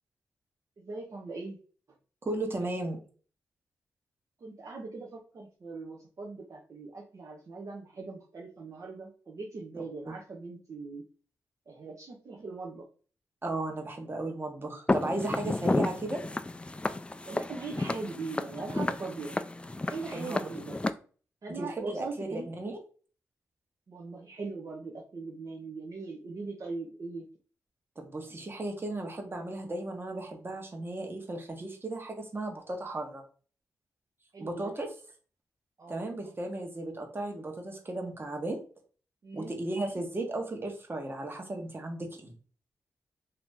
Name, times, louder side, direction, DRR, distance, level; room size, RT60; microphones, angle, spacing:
voice 1, 0.8-1.6 2.6-2.7 4.4-11.0 11.7-12.9 17.2-19.4 19.8-20.8 21.4-22.5 23.9-27.3 34.3-34.8 35.8-36.0 39.2-39.5, right 3 dB, 55° right, -2 dB, 0.7 m, -40 dB
voice 2, 2.2-3.0 9.8-10.1 13.4-16.2 20.1-20.6 21.6-22.8 28.0-33.2 34.4-34.9 35.9-38.6 39.3-42.3, right 2 dB, 35° right, 2 dB, 1.1 m, -35 dB
Walk footsteps, 14.9-20.9, left 2 dB, 15° left, 0.3 m, -32 dB
2.8 x 2.6 x 3.5 m, 0.40 s
supercardioid pair, 45°, 7 cm